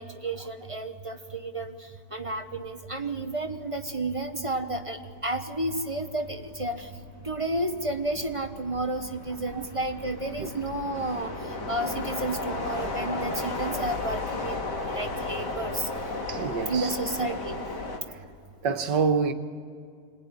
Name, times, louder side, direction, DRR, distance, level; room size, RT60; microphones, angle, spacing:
voice 1, 0.0-1.7 2.1-6.9 7.2-11.3 11.7-15.9 16.7-17.6, right 2 dB, 20° right, 1.0 m, -31 dB
sound 1, 3.0-3.2 3.6-18.0, left 2 dB, 70° left, 2.7 m, -35 dB
voice 2, 16.3-16.9 18.6-19.3, right 5 dB, 85° right, 2.0 m, -26 dB
26.0 x 21.0 x 9.8 m
omnidirectional pair, 1.9 m